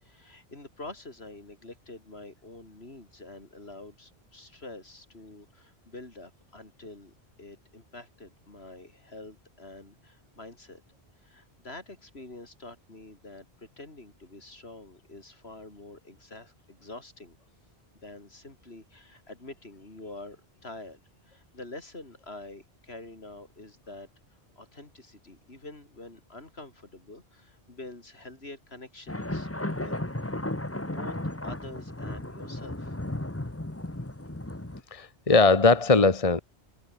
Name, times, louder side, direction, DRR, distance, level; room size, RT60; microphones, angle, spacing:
voice 1, 0.0-10.8 11.2-17.4 18.0-24.1 24.6-30.4 30.7-31.2 31.4-33.0, left 2 dB, 70° left, 4.4 m, -46 dB
sound 1, 29.1-34.8, left 1 dB, 15° left, 1.6 m, -34 dB
voice 2, 34.9-36.4, left 3 dB, 35° left, 1.4 m, -20 dB
omnidirectional pair, 1.1 m